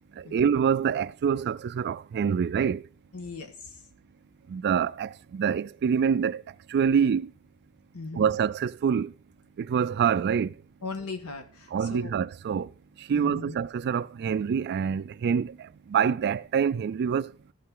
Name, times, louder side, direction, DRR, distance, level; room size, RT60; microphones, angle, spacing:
voice 1, 0.2-2.9 4.5-6.4 6.7-7.3 8.1-9.1 9.6-10.5 11.7-12.7 13.0-17.3, right 7 dB, 50° right, 0.3 m, -26 dB
voice 2, 3.1-3.8 7.9-8.3 10.8-12.1 13.1-13.6, left 4 dB, 80° left, 1.5 m, -38 dB
13.5 x 5.6 x 3.8 m
head